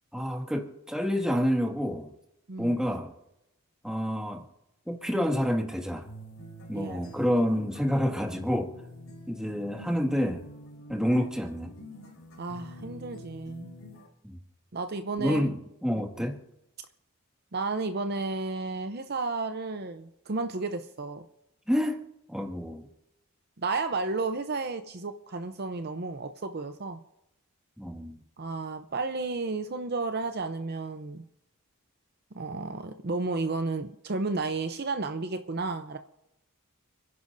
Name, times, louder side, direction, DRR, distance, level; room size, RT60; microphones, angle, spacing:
voice 1, 0.1-2.1 2.6-3.1 3.8-4.4 4.9-6.0 6.7-8.7 9.3-10.4 10.9-11.7 14.2-14.3 15.2-16.4 21.7-22.0 22.3-22.9 27.8-28.2, equal, 5° right, 1 dB, 1.9 m, -28 dB
sound 1, 6.0-14.1, equal, 70° left, 3.9 m, -47 dB
voice 2, 6.7-7.0 12.4-13.7 14.7-15.5 16.2-16.3 17.5-21.2 23.6-27.0 28.4-31.3 32.3-36.0, right 3 dB, 50° right, 8 dB, 0.7 m, -32 dB
30.0 x 10.5 x 2.7 m, 0.86 s
head